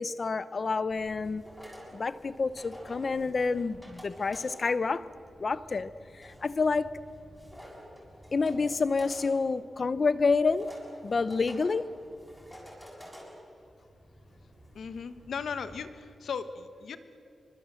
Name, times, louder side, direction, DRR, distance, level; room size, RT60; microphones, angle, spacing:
voice 1, 0.0-1.4 1.9-5.1 5.4-7.0 8.3-10.7 11.0-11.9, left 4 dB, 40° left, 15 dB, 0.7 m, -28 dB
sound 1, 0.9-15.9, equal, ahead, 7.0 m, -50 dB
voice 2, 14.7-17.0, left 6 dB, 80° left, 11 dB, 1.4 m, -37 dB
28.0 x 24.5 x 7.7 m, 2.4 s
wide cardioid pair, 165°, 0 cm